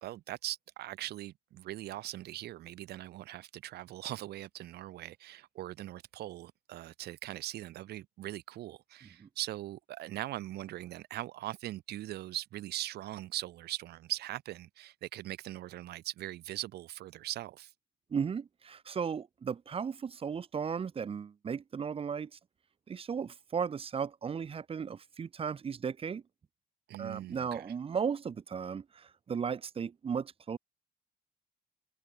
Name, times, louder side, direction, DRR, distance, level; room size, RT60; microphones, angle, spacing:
voice 1, 0.0-17.7 26.9-27.7, right 15 dB, 70° right, 2.8 m, -41 dB
voice 2, 18.1-22.4 22.9-26.2 27.0-30.6, right 6 dB, 35° right, 1.5 m, -35 dB
cardioid pair, 110°, 17 cm